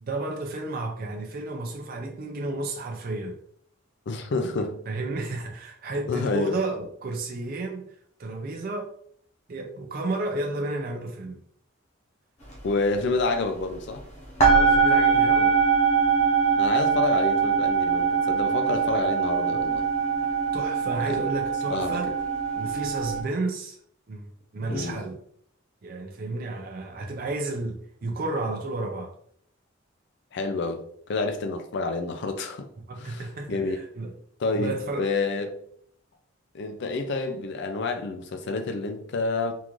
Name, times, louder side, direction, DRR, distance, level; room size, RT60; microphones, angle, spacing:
voice 1, 0.0-3.4 4.9-7.9 8.2-8.9 9.5-11.4 14.4-15.5 20.5-22.1 22.5-23.8 24.1-25.2 25.8-29.1 32.9-34.1 34.5-35.0, right 2 dB, 45° right, 0.5 m, -32 dB
voice 2, 4.1-4.8 6.1-6.5 12.6-14.0 16.6-19.9 21.1-21.2 21.7-22.0 24.7-25.0 30.3-32.7 33.0-33.8 34.4-35.6 36.5-39.5, left 3 dB, 55° left, 0.4 m, -28 dB
sound 1, 12.5-12.7 12.9-14.0 14.4-23.2, right 6 dB, 35° left, 0.8 m, -23 dB
3.7 x 2.5 x 3.0 m
head